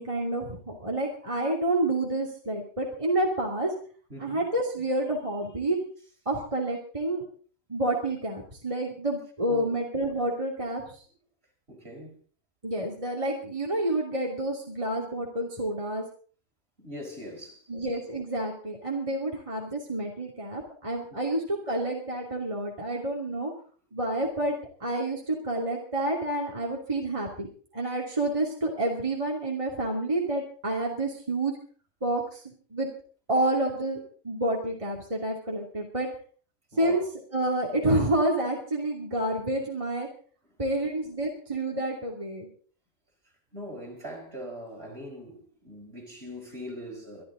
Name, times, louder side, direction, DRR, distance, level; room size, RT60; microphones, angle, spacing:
voice 1, 0.0-3.7 4.2-5.8 6.3-7.2 7.7-11.0 12.6-16.0 17.7-23.5 23.9-27.5 27.7-31.6 32.0-32.9 33.3-36.1 36.8-37.0 37.3-40.1 40.6-42.5, right 1 dB, 25° right, 2.8 m, -29 dB
voice 2, 4.1-4.5 9.5-9.7 11.7-12.2 16.8-17.7 21.1-21.2 36.7-37.0 43.5-47.2, equal, 50° right, 4.9 m, -41 dB
24.5 x 12.0 x 3.9 m
omnidirectional pair, 1.3 m